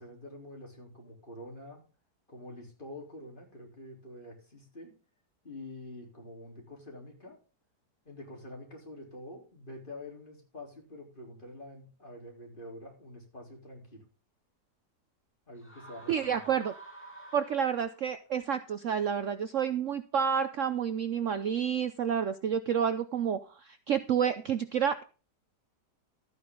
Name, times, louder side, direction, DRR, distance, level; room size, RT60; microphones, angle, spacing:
voice 1, 0.0-1.8 2.3-4.9 5.4-7.4 8.1-14.0 15.5-16.4, left 1 dB, 30° left, 0 dB, 3.8 m, -47 dB
sound 1, 15.6-18.2, right 2 dB, 5° left, 3.3 m, -50 dB
voice 2, 16.1-16.7 17.3-25.0, right 8 dB, 60° right, 11 dB, 0.9 m, -29 dB
13.0 x 9.5 x 3.8 m, 0.34 s
omnidirectional pair, 1.8 m